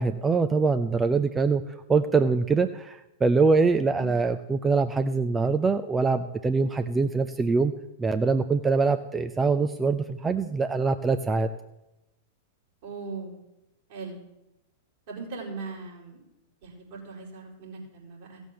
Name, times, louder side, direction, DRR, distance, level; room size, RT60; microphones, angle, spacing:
voice 1, 0.0-1.6 1.9-7.7 8.0-11.5, right 4 dB, 15° right, 9 dB, 0.6 m, -24 dB
voice 2, 12.8-13.4 13.9-14.2 15.1-16.2 16.6-18.4, right 4 dB, 60° right, -2 dB, 5.1 m, -39 dB
15.5 x 7.1 x 7.6 m, 0.93 s
figure-of-eight pair, 100°, 0 cm